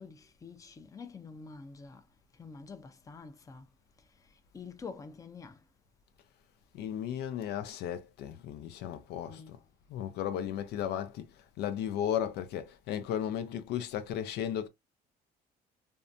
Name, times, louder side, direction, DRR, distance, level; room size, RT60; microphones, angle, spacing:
voice 1, 0.0-2.0 2.4-3.6 4.5-5.6 9.3-9.6 10.5-10.6, left 5 dB, 20° left, 0.5 m, -47 dB
voice 2, 6.7-9.4 9.9-11.3 11.6-14.7, left 9 dB, 80° left, 0.5 m, -35 dB
2.6 x 2.2 x 2.5 m
cardioid pair, 110°, 17 cm